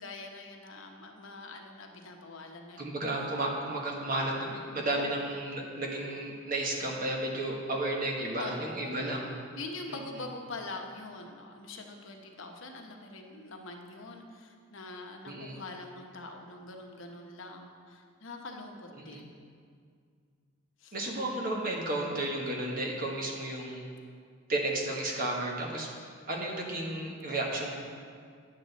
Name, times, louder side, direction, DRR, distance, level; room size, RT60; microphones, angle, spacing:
voice 1, 0.0-3.0 4.9-5.2 8.4-9.2 9.6-19.3 20.8-21.0, left 2 dB, 80° left, 2 dB, 1.0 m, -44 dB
voice 2, 2.8-9.2 9.9-10.0 15.2-15.6 19.0-19.2 20.9-23.8 24.5-25.9 26.3-27.7, right 1 dB, 45° right, -1 dB, 1.4 m, -33 dB
9.9 x 8.0 x 4.1 m, 2.1 s
head